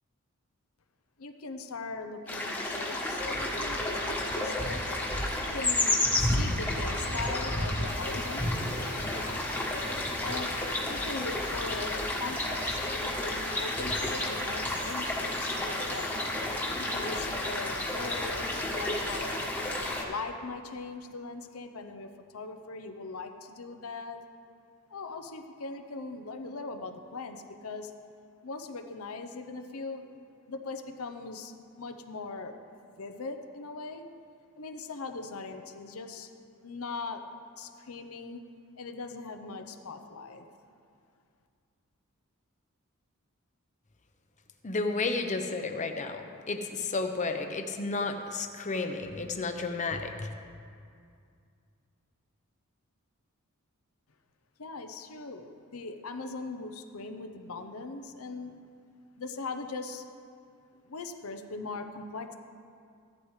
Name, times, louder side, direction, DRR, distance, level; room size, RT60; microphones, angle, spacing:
voice 1, 1.2-4.8 5.4-8.5 10.2-10.5 10.9-16.2 16.9-19.4 20.0-24.2 24.9-27.9 28.4-30.2 30.5-32.5 33.0-34.1 34.6-36.3 36.6-37.2 37.5-38.4 38.8-40.5 54.6-58.6 59.2-60.0 60.7-62.3, left 3 dB, 70° left, 6 dB, 0.7 m, -40 dB
sound 1, 2.3-20.0, left 1 dB, 10° left, 1.4 m, -31 dB
voice 2, 44.6-46.2 46.5-50.3, left 3 dB, 35° left, 5 dB, 0.8 m, -32 dB
15.5 x 11.5 x 3.2 m, 2.3 s
head